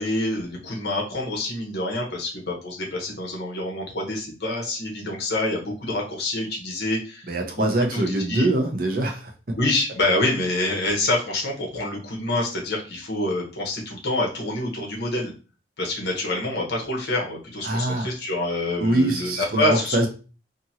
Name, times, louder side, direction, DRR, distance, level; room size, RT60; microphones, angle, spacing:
voice 1, 0.0-7.6 7.9-8.0 8.3-8.5 9.6-15.3 15.8-20.0, left 2 dB, 60° left, -1 dB, 0.9 m, -26 dB
voice 2, 7.3-9.3 17.6-18.1 18.8-20.1, right 1 dB, 50° right, 2 dB, 0.6 m, -23 dB
2.8 x 2.5 x 2.7 m, 0.35 s
head